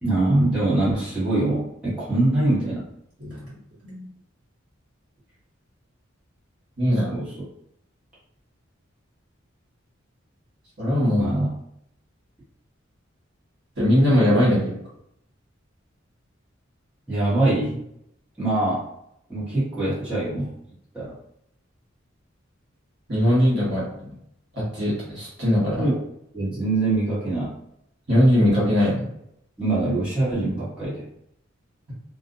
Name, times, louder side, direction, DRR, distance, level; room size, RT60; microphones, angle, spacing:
voice 1, 0.0-2.8 7.1-7.3 11.1-11.6 17.1-17.8 18.4-18.9 19.3-20.5 20.9-21.1 25.7-25.9 26.3-27.5 29.6-31.0, right 2 dB, 5° right, -11 dB, 1.1 m, -23 dB
voice 2, 6.8-7.1 10.8-11.3 13.8-14.7 23.1-23.8 24.5-25.9 28.1-29.0, equal, 60° right, -8 dB, 1.3 m, -20 dB
2.5 x 2.1 x 2.6 m, 0.74 s
head